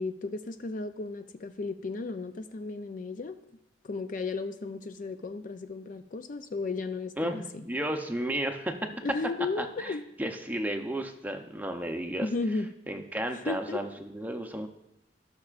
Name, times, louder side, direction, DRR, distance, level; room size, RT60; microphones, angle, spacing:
voice 1, 0.0-3.4 3.8-7.6 9.0-10.0 12.2-12.7 13.3-13.8, left 3 dB, 45° left, 9 dB, 0.4 m, -34 dB
voice 2, 7.2-8.7 9.6-12.3 12.9-14.7, right 1 dB, 10° right, 5 dB, 0.6 m, -33 dB
16.5 x 6.0 x 2.4 m, 0.91 s
head